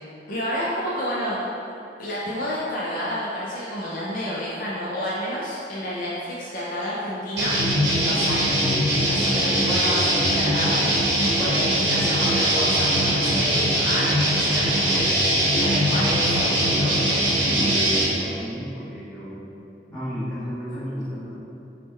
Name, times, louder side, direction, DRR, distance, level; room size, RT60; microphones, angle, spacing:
voice 1, 0.3-1.4 2.0-7.6 8.0-8.5 9.1-15.0 15.5-16.9 20.7-20.8, equal, 50° left, -7 dB, 0.4 m, -30 dB
sound 1, 7.4-18.0, right 1 dB, 75° right, 0.7 m, -21 dB
voice 2, 17.5-19.4 19.9-21.4, equal, 5° left, -13 dB, 1.0 m, -33 dB
3.5 x 2.1 x 3.1 m, 2.8 s
head